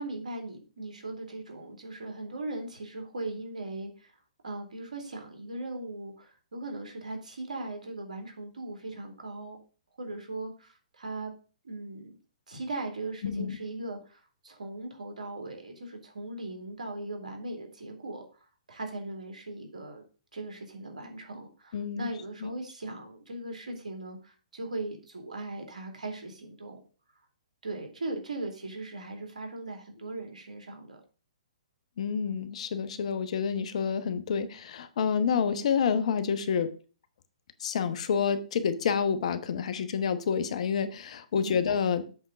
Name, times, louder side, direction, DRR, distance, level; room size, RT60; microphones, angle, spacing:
voice 1, 0.0-4.1 4.4-9.6 10.0-11.3 11.6-12.2 12.5-20.0 20.3-26.8 27.6-31.0 41.3-41.6, right 2 dB, 85° right, 3 dB, 2.7 m, -39 dB
voice 2, 13.2-13.6 21.7-22.1 22.4-22.5 32.0-36.7 37.6-42.0, left 6 dB, 60° left, 11 dB, 1.1 m, -28 dB
7.9 x 3.8 x 6.8 m, 0.37 s
hypercardioid pair, 130°, 4 cm